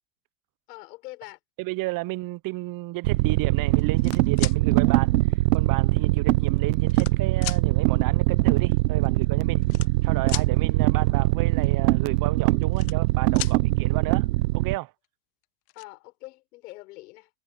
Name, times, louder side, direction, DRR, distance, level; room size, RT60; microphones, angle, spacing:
voice 1, 0.7-1.4 15.7-17.3, left 20 dB, 75° left, 7.4 m, -43 dB
voice 2, 1.6-5.1 5.5-9.6 10.0-14.3 14.5-14.9, right 19 dB, 45° right, 0.8 m, -32 dB
sound 1, 3.0-14.8, right 17 dB, 85° right, 0.8 m, -22 dB
sound 2, 3.8-4.6 5.5-5.6 6.5-7.1 7.4-7.6 8.8-8.9 9.0-9.2 9.6-10.5 12.4-13.1 13.3-13.6 15.0-15.1 15.4-15.8, left 24 dB, 55° left, 1.1 m, -35 dB
supercardioid pair, 105°, 47 cm